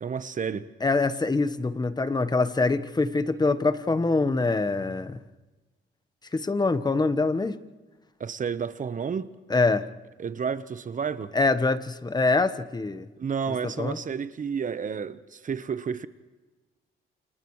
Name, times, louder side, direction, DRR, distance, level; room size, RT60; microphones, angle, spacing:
voice 1, 0.0-0.7 8.2-9.3 10.2-11.3 13.2-16.1, right 6 dB, 40° right, 1.1 m, -31 dB
voice 2, 0.8-5.2 6.3-7.6 9.5-9.8 11.3-13.1 13.5-14.0, left 3 dB, 20° left, 1.2 m, -24 dB
29.0 x 28.5 x 3.2 m
cardioid pair, 90°, 20 cm